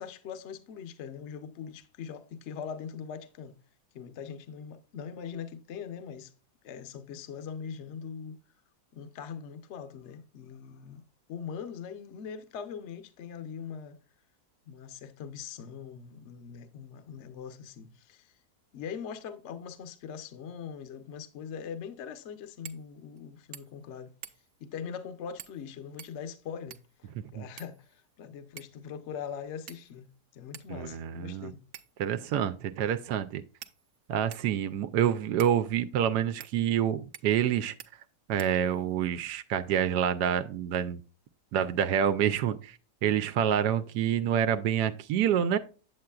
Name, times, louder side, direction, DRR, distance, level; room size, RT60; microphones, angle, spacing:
voice 1, 0.0-3.5 3.9-6.3 6.6-8.4 8.9-11.0 11.3-14.0 14.7-18.3 18.7-24.1 24.6-30.1 30.3-31.6, left 7 dB, 55° left, 0.9 m, -41 dB
sound 1, 22.6-22.9 23.2-23.3 23.5-23.9 24.2-24.6 25.4-25.6 26.0-27.0 27.6-28.1 28.6-28.8 29.7-30.1 30.5-30.7 31.7-32.1 32.9-33.0 33.6-34.5 35.4-35.6 36.4-36.5 37.1-37.5 37.8-37.9 38.4-38.9, right 10 dB, 65° right, 0.7 m, -48 dB
voice 2, 30.7-31.5 32.0-33.4 34.1-37.7 38.3-41.0 41.5-45.6, right 9 dB, 85° right, 1.2 m, -27 dB
8.8 x 7.7 x 2.3 m
omnidirectional pair, 1.7 m